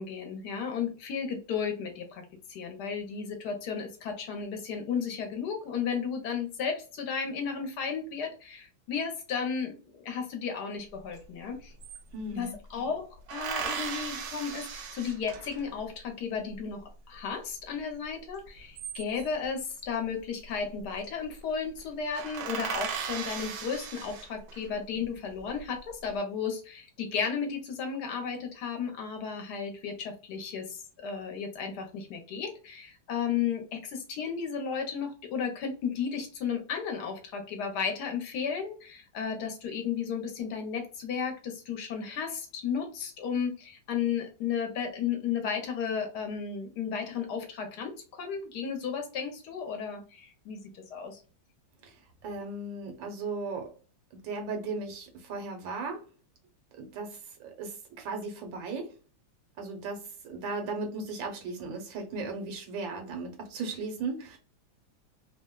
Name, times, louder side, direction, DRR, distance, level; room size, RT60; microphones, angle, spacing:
voice 1, 0.0-11.7 12.3-51.2, left 6 dB, 70° left, 1.2 m, -34 dB
sound 1, 11.2-11.3 11.5-12.5 13.3-15.8 18.5-19.5 20.6-21.0 21.3-21.4 21.8-21.9 22.1-24.7 25.3-25.9, right 7 dB, 70° right, 1.1 m, -37 dB
voice 2, 12.1-12.6 51.8-51.9 52.2-53.7 54.1-56.0 56.8-58.9 59.6-64.4, right 3 dB, 85° right, 1.6 m, -36 dB
3.4 x 2.1 x 2.2 m
omnidirectional pair, 2.0 m